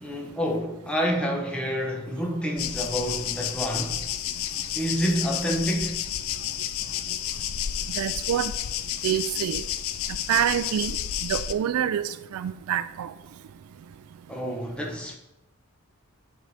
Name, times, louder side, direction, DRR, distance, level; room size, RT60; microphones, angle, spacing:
voice 1, 0.0-4.0 4.7-6.0 14.3-15.2, equal, 5° left, 0.8 m, -28 dB
sound 1, 2.6-11.5, left 11 dB, 65° left, 0.3 m, -31 dB
voice 2, 7.9-8.5 9.0-9.6 10.3-10.9 11.2-13.1, right 10 dB, 80° right, 0.3 m, -26 dB
8.7 x 3.9 x 3.4 m
head